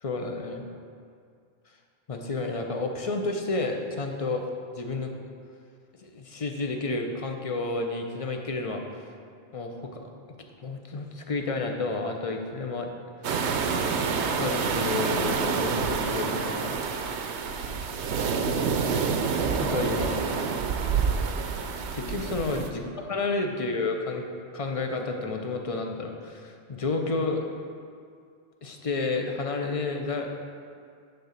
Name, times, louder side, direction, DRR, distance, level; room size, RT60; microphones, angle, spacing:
voice 1, 0.0-0.7 2.1-4.5 4.7-5.1 6.0-9.0 9.5-10.0 10.6-12.9 14.4-16.8 19.6-20.3 21.9-22.8 23.1-24.2 24.5-27.4 28.6-30.3, left 3 dB, 35° left, 3 dB, 0.7 m, -30 dB
sound 1, 13.2-22.7, right 5 dB, 75° right, 0.9 m, -27 dB
10.0 x 3.9 x 6.6 m, 2.3 s
omnidirectional pair, 1.2 m